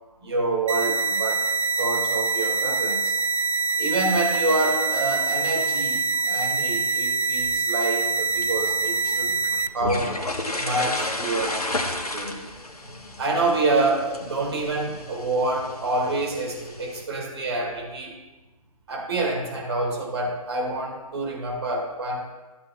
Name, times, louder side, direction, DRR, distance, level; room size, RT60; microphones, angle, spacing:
voice 1, 0.2-1.5 1.8-3.1 3.8-9.4 9.7-10.2 10.6-11.6 12.1-12.4 12.8-18.2 18.9-22.3, right 2 dB, 40° right, 0 dB, 2.2 m, -27 dB
sound 1, 0.7-9.7, right 4 dB, 60° right, 0.4 m, -24 dB
sound 2, 8.2-17.0, left 2 dB, 75° left, 1.2 m, -33 dB
13.5 x 7.5 x 2.3 m, 1.2 s
figure-of-eight pair, 145°, 20 cm